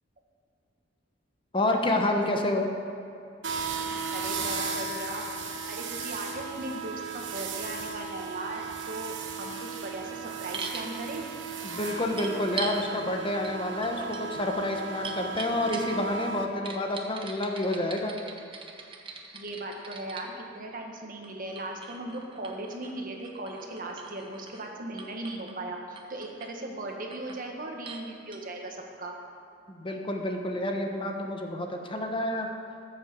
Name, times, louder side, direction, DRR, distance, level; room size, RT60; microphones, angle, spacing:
voice 1, 1.5-2.7 11.6-18.1 29.7-32.5, left 1 dB, 30° left, 3 dB, 1.0 m, -29 dB
sound 1, 3.4-16.5, right 5 dB, 85° right, 1.1 m, -36 dB
voice 2, 4.1-5.2 5.7-9.5 9.8-11.2 19.3-29.1, right 2 dB, 50° right, 1 dB, 1.6 m, -38 dB
sound 2, 10.5-10.9 12.2-12.8 13.4-13.6 13.8-16.1 16.6-20.3 21.2-24.7 25.0-25.6 26.0-26.5 26.9-27.4 27.8-28.0 28.3-28.4, right 4 dB, 30° right, 1.1 m, -41 dB
14.5 x 6.7 x 6.9 m, 2.5 s
head